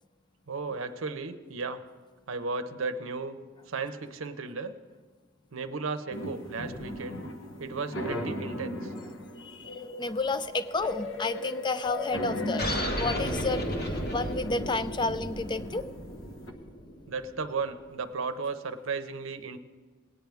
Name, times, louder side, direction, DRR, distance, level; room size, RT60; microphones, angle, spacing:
voice 1, 0.5-1.8 2.3-3.4 3.7-4.7 5.5-7.2 7.6-8.9 17.1-19.6, right 4 dB, 75° right, 8 dB, 0.7 m, -35 dB
sound 1, 6.1-16.5, left 1 dB, 70° left, 1.0 m, -38 dB
voice 2, 9.4-9.7 10.0-12.7 13.0-13.6 14.1-15.8, left 3 dB, 20° left, 13 dB, 0.4 m, -31 dB
sound 2, 12.6-17.6, equal, 50° left, 1.7 m, -33 dB
19.0 x 9.2 x 3.5 m, 1.4 s
head